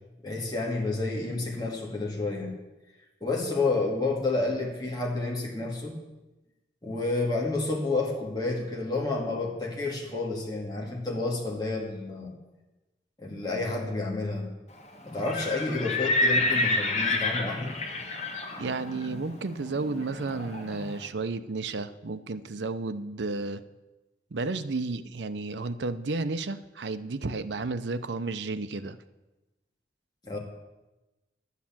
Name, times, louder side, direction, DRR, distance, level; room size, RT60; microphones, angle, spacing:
voice 1, 0.2-2.5 3.2-6.0 6.8-12.3 13.2-14.5 15.0-17.8 30.2-30.4, left 3 dB, 20° left, -2 dB, 2.2 m, -30 dB
Livestock farm animals working animals, 15.1-20.9, left 2 dB, 40° left, 1.7 m, -29 dB
voice 2, 18.6-23.6 24.3-29.0, right 3 dB, 85° right, 12 dB, 0.7 m, -32 dB
11.0 x 8.3 x 7.3 m, 1.1 s
head